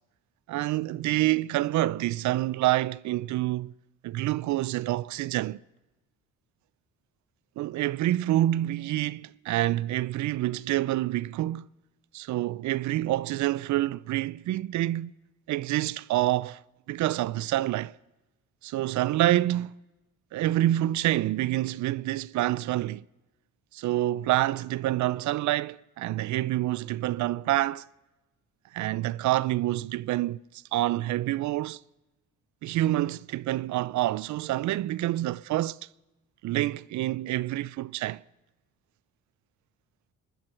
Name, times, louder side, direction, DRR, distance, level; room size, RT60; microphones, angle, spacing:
voice 1, 0.5-3.7 4.0-5.6 7.6-11.7 12.1-15.1 15.5-16.6 16.9-17.9 18.6-19.7 20.3-23.0 23.7-27.9 28.7-30.4 30.7-31.8 32.6-35.8 36.4-38.2, right 15 dB, 70° right, 0.4 m, -27 dB
27.0 x 12.0 x 4.4 m
cardioid pair, 90°, 30 cm